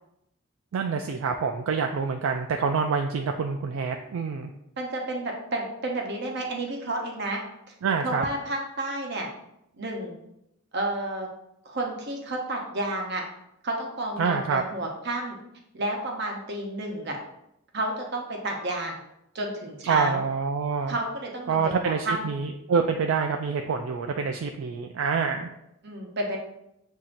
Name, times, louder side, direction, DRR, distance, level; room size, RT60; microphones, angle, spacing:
voice 1, 0.7-4.5 7.8-8.3 14.2-14.6 19.9-20.9 21.5-25.5, right 5 dB, 70° right, 4 dB, 0.3 m, -26 dB
voice 2, 4.8-7.4 8.0-9.3 9.7-10.2 10.7-11.3 11.6-13.2 13.6-15.4 15.7-17.2 17.7-19.0 19.3-20.2 20.9-22.3 25.8-26.4, right 1 dB, 55° right, 1 dB, 0.8 m, -31 dB
7.2 x 2.7 x 2.5 m, 0.81 s
head